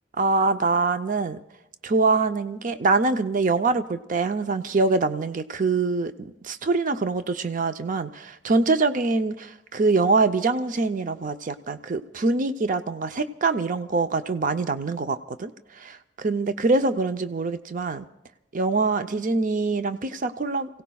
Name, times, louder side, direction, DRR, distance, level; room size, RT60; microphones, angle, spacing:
voice 1, 0.2-1.4 1.8-15.5 15.8-18.0 18.5-20.8, right 3 dB, 45° right, 10 dB, 0.6 m, -24 dB
30.0 x 17.0 x 2.3 m, 0.88 s
head